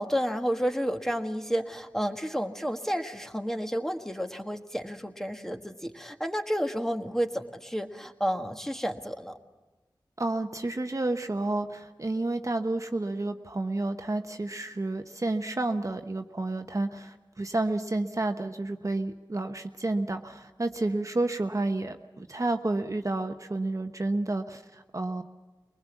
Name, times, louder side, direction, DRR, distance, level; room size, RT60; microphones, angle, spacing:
voice 1, 0.0-9.3, equal, 5° left, 5 dB, 1.5 m, -31 dB
voice 2, 10.2-25.2, right 2 dB, 40° right, 6 dB, 1.0 m, -30 dB
22.5 x 20.0 x 7.2 m, 1.2 s
wide cardioid pair, 50°, 8 cm